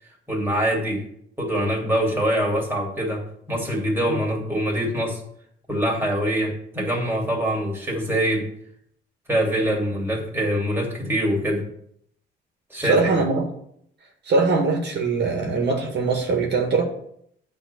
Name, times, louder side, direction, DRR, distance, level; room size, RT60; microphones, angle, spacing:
voice 1, 0.3-1.0 1.4-5.2 5.7-8.5 9.3-11.7 12.7-13.1, equal, 10° right, -2 dB, 2.7 m, -24 dB
voice 2, 12.8-13.5 14.2-16.8, right 4 dB, 60° right, 1 dB, 1.9 m, -22 dB
9.2 x 3.8 x 6.9 m, 0.69 s
cardioid pair, 90°, 20 cm